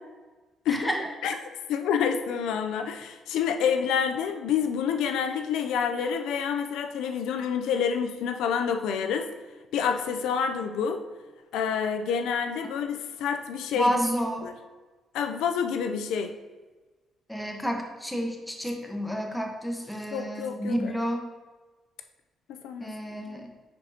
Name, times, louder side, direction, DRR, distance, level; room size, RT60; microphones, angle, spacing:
voice 1, 0.7-1.1 13.8-14.5 17.3-21.2 22.8-23.5, equal, 5° left, 2 dB, 1.1 m, -30 dB
voice 2, 1.7-9.3 9.7-11.0 11.5-13.9 14.4-14.5 15.1-16.3 20.1-21.1 22.5-22.9, left 7 dB, 90° left, 6 dB, 0.4 m, -28 dB
9.5 x 4.3 x 2.8 m, 1.3 s
cardioid pair, 90°, 0 cm